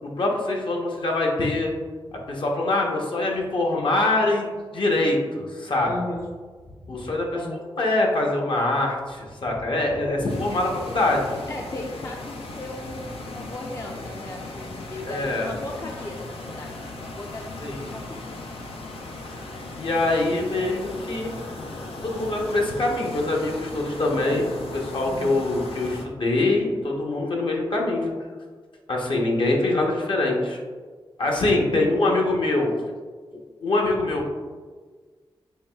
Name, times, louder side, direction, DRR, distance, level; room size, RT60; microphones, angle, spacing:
voice 1, 0.0-1.7 2.3-5.9 6.9-7.3 7.8-11.4 15.1-15.5 17.6-17.9 19.8-21.3 22.0-28.1 28.9-30.6 31.2-32.7 33.6-34.3, left 2 dB, 60° left, 0 dB, 0.8 m, -24 dB
voice 2, 5.8-6.3 7.4-7.6 11.5-18.3 25.0-25.4 29.6-29.7 31.7-32.2, left 2 dB, 30° left, 1 dB, 0.4 m, -36 dB
sound 1, 10.3-26.0, left 2 dB, 90° left, 0.5 m, -37 dB
4.6 x 3.2 x 2.3 m, 1.5 s
cardioid pair, 60°, 10 cm